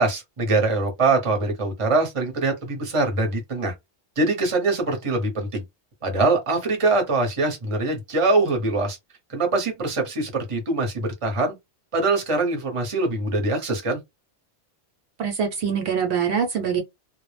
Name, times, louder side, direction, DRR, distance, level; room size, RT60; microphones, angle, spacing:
voice 1, 0.0-3.7 4.2-5.6 6.0-9.0 9.3-11.5 11.9-14.0, right 3 dB, 30° right, 0.8 m, -23 dB
voice 2, 15.2-16.8, right 7 dB, 70° right, 0.9 m, -24 dB
2.2 x 2.0 x 3.1 m
omnidirectional pair, 1.1 m